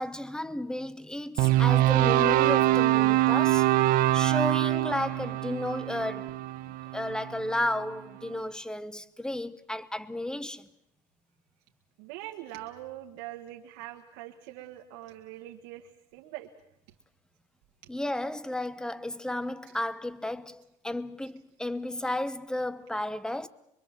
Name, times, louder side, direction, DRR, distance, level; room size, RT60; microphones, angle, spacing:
voice 1, 0.0-6.4 6.9-10.7 17.9-23.5, left 1 dB, 5° left, 1.0 m, -33 dB
sound 1, 1.4-7.6, right 15 dB, 70° right, 0.9 m, -24 dB
voice 2, 12.0-16.5, right 14 dB, 90° right, 1.7 m, -43 dB
24.0 x 23.5 x 7.4 m
cardioid pair, 110°, 16 cm